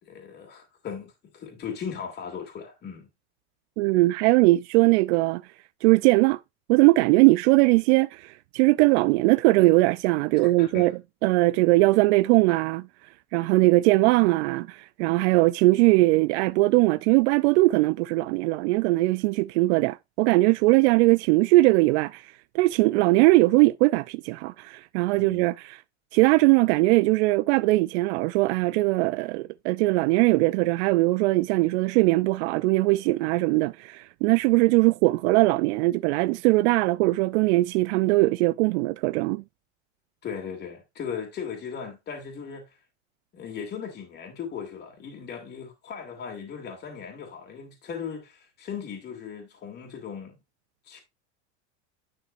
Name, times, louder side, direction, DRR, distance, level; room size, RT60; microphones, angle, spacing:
voice 1, 0.0-3.1 10.6-10.9 25.2-25.5 40.2-42.8 43.3-50.4 50.8-51.0, left 7 dB, 30° left, 2.5 m, -37 dB
voice 2, 3.8-5.4 5.8-6.4 6.7-10.9 11.2-12.9 13.3-25.8 26.1-39.4, right 21 dB, 70° right, 0.5 m, -20 dB
10.5 x 5.9 x 2.5 m
supercardioid pair, 145°, 35 cm